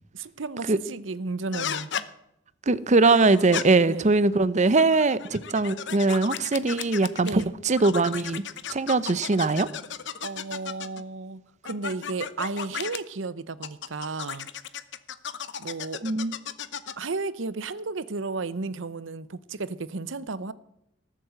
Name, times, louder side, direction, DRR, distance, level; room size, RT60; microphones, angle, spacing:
voice 1, 0.1-1.9 3.8-4.1 7.2-7.5 10.2-14.5 15.6-16.0 17.0-20.5, right 3 dB, 80° right, 0.8 m, -33 dB
sound 1, 1.5-2.1 3.0-3.6 4.6-7.4 7.8-11.0 11.6-13.0 13.6-17.1, left 8 dB, 65° left, 0.8 m, -35 dB
voice 2, 2.7-8.4 8.7-9.7 16.0-16.3, right 3 dB, 40° right, 0.7 m, -21 dB
18.5 x 7.6 x 7.7 m
head